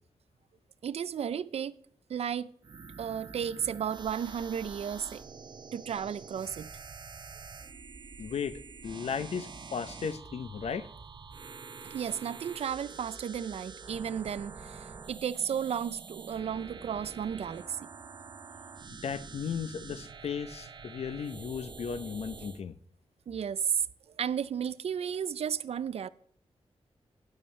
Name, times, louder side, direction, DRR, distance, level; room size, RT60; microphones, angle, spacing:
voice 1, 0.8-1.8 2.1-2.5 3.0-5.2 5.7-6.7 11.8-17.9 23.3-23.9 24.2-26.1, right 8 dB, 75° right, 0.5 m, -33 dB
sound 1, 2.6-22.6, right 5 dB, 45° right, 0.8 m, -47 dB
voice 2, 8.2-10.9 19.0-22.7, left 6 dB, 75° left, 0.7 m, -36 dB
12.5 x 10.5 x 3.3 m
wide cardioid pair, 110°, 11 cm